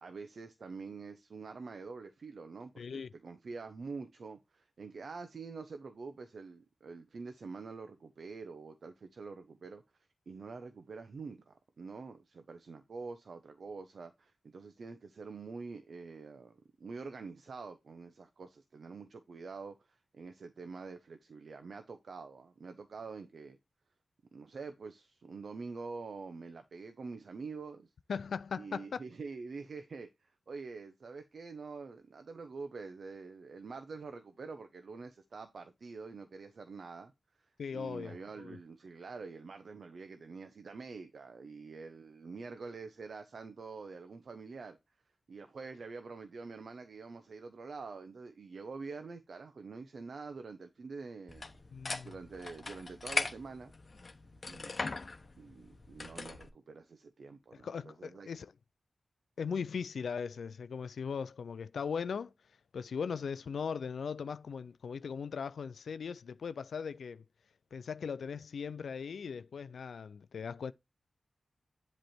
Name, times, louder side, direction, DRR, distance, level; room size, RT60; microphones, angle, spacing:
voice 1, 0.0-9.8 10.3-23.6 24.3-27.9 28.6-37.1 37.4-44.8 45.3-51.5 51.9-53.7 54.5-55.0 55.4-58.3, right 4 dB, 70° right, 0.7 m, -46 dB
voice 2, 2.8-3.1 28.1-29.0 37.6-38.6 51.7-52.1 57.6-58.5 59.4-62.3 62.7-67.2 67.7-70.7, left 6 dB, 85° left, 0.3 m, -39 dB
sound 1, 51.3-56.5, left 3 dB, 50° left, 0.9 m, -40 dB
7.7 x 3.2 x 4.3 m
cardioid pair, 45°, 0 cm